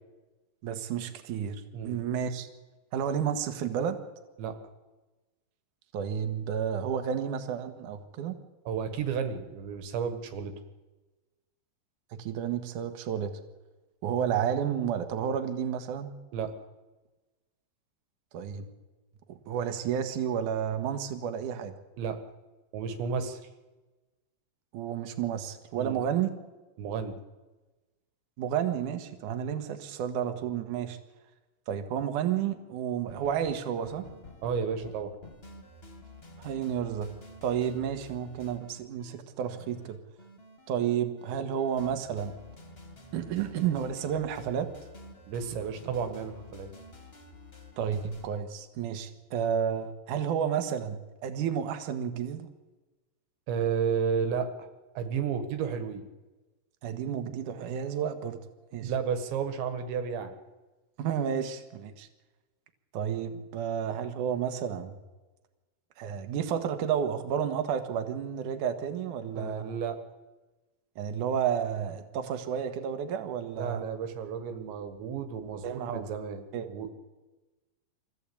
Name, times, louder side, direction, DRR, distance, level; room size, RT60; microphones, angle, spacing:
voice 1, 0.6-2.5 2.9-4.0 5.9-8.4 12.1-13.4 14.0-16.1 18.3-18.7 19.3-21.7 24.7-26.3 28.4-31.0 31.7-34.1 36.4-37.1 37.4-40.0 40.7-42.4 43.1-44.7 47.8-52.5 56.8-58.4 58.7-58.9 61.0-62.1 62.9-64.9 66.0-69.7 71.0-73.8 75.6-76.1 76.5-76.7, right 8 dB, 60° right, 7 dB, 2.5 m, -31 dB
voice 2, 8.7-10.5 16.3-16.5 22.0-22.2 22.7-23.4 25.8-26.0 26.8-27.2 34.4-35.1 45.3-46.7 53.5-54.7 55.0-56.0 58.8-60.3 69.4-70.0 73.6-76.4 76.7-76.9, right 6 dB, 85° right, 8 dB, 4.0 m, -32 dB
sound 1, 33.1-48.3, left 2 dB, 25° left, 1.4 m, -50 dB
24.5 x 15.5 x 8.6 m, 1.2 s
omnidirectional pair, 5.0 m